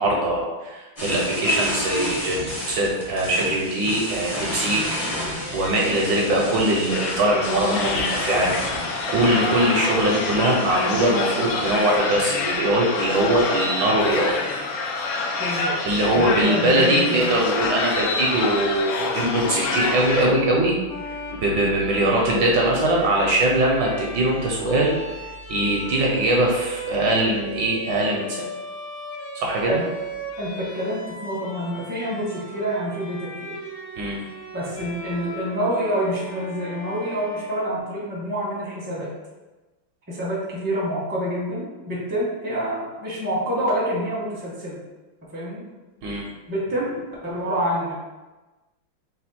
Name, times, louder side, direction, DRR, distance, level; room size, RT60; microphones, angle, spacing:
voice 1, 0.0-4.8 5.1-5.3 5.5-8.5 9.1-14.4 15.9-20.7 21.0-24.9 25.5-28.5 29.3-29.8 34.0-34.2 46.0-46.2, right 1 dB, 70° right, -1 dB, 1.2 m, -21 dB
sound 1, 1.0-12.0, equal, 25° left, 0.7 m, -32 dB
sound 2, 6.9-20.3, left 3 dB, 75° left, 1.3 m, -27 dB
voice 2, 15.4-15.7 16.1-17.4 29.7-29.9 30.4-33.5 34.5-39.1 40.1-44.8 45.3-45.6 46.5-47.9, equal, 10° right, -6 dB, 0.5 m, -27 dB
Bowed string instrument, 20.9-38.3, right 1 dB, 60° left, 0.8 m, -38 dB
4.3 x 2.3 x 4.2 m, 1.2 s
omnidirectional pair, 2.3 m